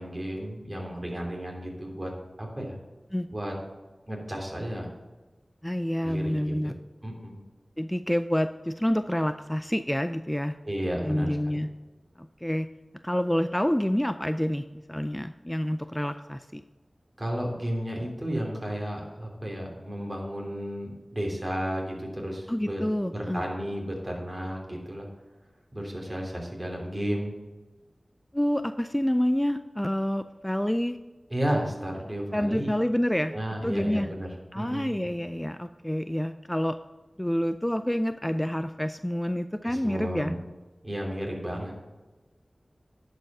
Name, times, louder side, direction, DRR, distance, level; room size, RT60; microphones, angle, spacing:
voice 1, 0.0-2.1 2.4-2.8 3.3-3.5 4.1-4.9 6.0-6.5 7.0-7.4 10.6-11.6 17.2-22.8 23.1-25.1 25.7-27.3 31.3-32.7 33.3-34.3 34.5-35.1 39.6-40.3 40.8-41.8, equal, 35° right, 0 dB, 3.2 m, -33 dB
voice 2, 5.6-6.8 7.8-10.6 11.0-11.7 12.2-12.7 13.0-16.6 22.5-23.4 28.3-31.0 32.3-33.3 33.6-34.1 34.5-36.8 37.2-40.3, equal, 10° left, 10 dB, 0.4 m, -28 dB
10.5 x 5.4 x 5.5 m, 1.2 s
wide cardioid pair, 45°, 0 cm